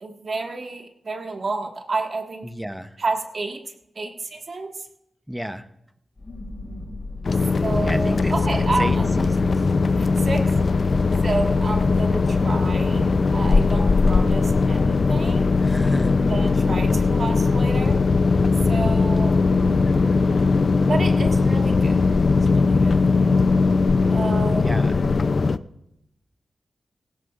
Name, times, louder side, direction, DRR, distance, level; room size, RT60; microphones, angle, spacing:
voice 1, 0.0-2.5 3.0-3.6 3.9-4.7 7.6-9.1 10.0-10.5 11.2-15.5 16.2-17.9 18.6-19.9 20.9-22.0 22.4-23.0 24.1-25.1, right 3 dB, 55° right, 2 dB, 1.6 m, -30 dB
voice 2, 2.4-3.0 5.3-5.7 7.8-9.5 15.6-16.2 24.6-25.0, equal, 5° right, 11 dB, 0.7 m, -32 dB
sound 1, 6.2-22.1, left 3 dB, 35° left, 3.9 m, -32 dB
sound 2, 7.2-25.6, left 4 dB, 50° left, 0.4 m, -20 dB
18.5 x 17.0 x 2.4 m, 0.82 s
wide cardioid pair, 90°, 0 cm